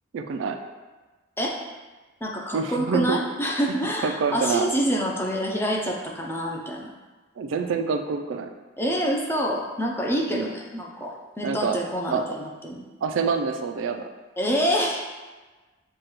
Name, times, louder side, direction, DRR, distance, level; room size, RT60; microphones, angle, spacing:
voice 1, 0.1-0.6 2.5-3.2 4.0-4.7 7.4-8.5 10.3-10.5 11.4-11.8 12.1-12.2 13.0-14.1, right 5 dB, 80° right, 7 dB, 0.3 m, -26 dB
voice 2, 2.2-6.9 8.8-12.8 14.4-15.0, equal, 10° left, -1 dB, 0.4 m, -27 dB
6.3 x 2.3 x 3.0 m, 1.3 s
head